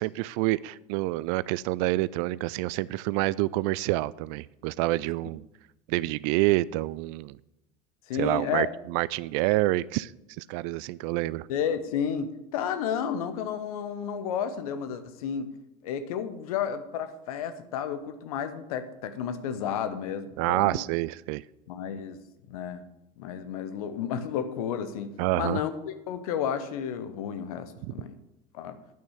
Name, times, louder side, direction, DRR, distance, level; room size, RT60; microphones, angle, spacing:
voice 1, 0.0-5.4 5.9-7.4 8.1-10.1 10.4-11.5 20.4-21.4 25.2-25.6 27.8-27.9, right 19 dB, 60° right, 0.4 m, -27 dB
voice 2, 8.1-8.7 11.5-15.5 15.8-20.8 21.7-22.2 22.5-22.8 23.2-28.2 28.5-28.8, left 8 dB, 70° left, 1.0 m, -32 dB
8.9 x 6.2 x 7.9 m
hypercardioid pair, 70°, 19 cm